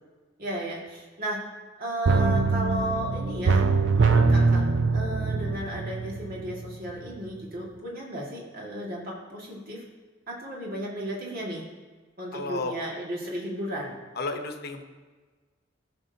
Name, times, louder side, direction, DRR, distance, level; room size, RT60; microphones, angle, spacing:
voice 1, 0.4-1.4 1.8-3.6 3.9-4.6 4.9-9.8 10.3-11.6 12.2-14.0, right 1 dB, 50° right, -3 dB, 2.1 m, -34 dB
sound 1, 2.1-6.7 7.1-7.2, right 4 dB, 70° right, 0.6 m, -23 dB
voice 2, 12.3-12.7 14.2-14.8, left 3 dB, 55° left, 5 dB, 0.9 m, -32 dB
15.0 x 6.1 x 2.8 m, 1.4 s
head